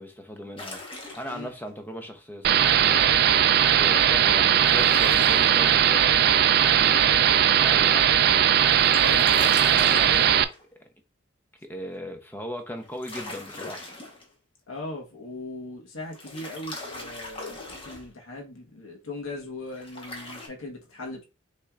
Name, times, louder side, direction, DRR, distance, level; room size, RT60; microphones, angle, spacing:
voice 1, 0.0-3.2 3.7-8.5 9.7-10.4 11.6-13.8, equal, 10° left, 0.7 m, -38 dB
sound 1, 0.6-1.5 4.6-5.8 8.2-10.6 12.8-14.2 16.1-18.1 19.7-20.5, left 2 dB, 25° left, 1.1 m, -39 dB
sound 2, 2.4-10.4, right 9 dB, 50° right, 0.3 m, -19 dB
voice 2, 14.7-21.2, left 2 dB, 90° left, 1.4 m, -39 dB
5.8 x 3.3 x 2.4 m
head